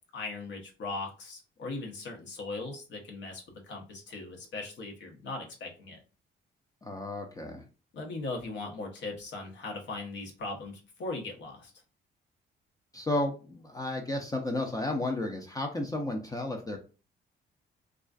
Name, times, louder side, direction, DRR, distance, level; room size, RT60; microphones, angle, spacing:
voice 1, 0.1-6.0 7.9-11.7, left 3 dB, 65° left, 1 dB, 0.8 m, -39 dB
voice 2, 6.8-7.6 12.9-16.8, left 2 dB, 20° left, 2 dB, 0.4 m, -32 dB
2.4 x 2.3 x 2.3 m, 0.34 s
cardioid pair, 90°, 20 cm